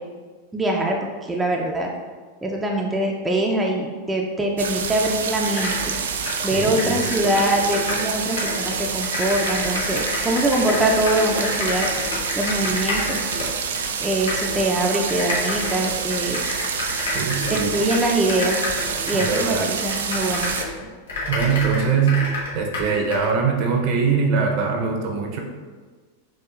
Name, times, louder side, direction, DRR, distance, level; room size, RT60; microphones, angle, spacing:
voice 1, 0.5-1.9 2.4-6.0 6.4-11.9 12.4-13.2 14.0-16.4 17.5-18.6 19.1-20.5, right 1 dB, 10° right, 0 dB, 0.5 m, -23 dB
sound 1, 4.6-20.6, right 6 dB, 80° right, 0.3 m, -27 dB
sound 2, 5.0-5.1 5.4-8.1 8.4-13.8 14.3-14.6 15.1-20.8 21.1-23.3, left 3 dB, 80° left, 1.2 m, -29 dB
voice 2, 6.5-7.1 17.1-17.8 19.1-19.6 21.3-22.2 22.5-25.4, right 6 dB, 50° right, 2 dB, 0.7 m, -22 dB
5.8 x 2.4 x 2.4 m, 1.5 s
hypercardioid pair, 105°, 0 cm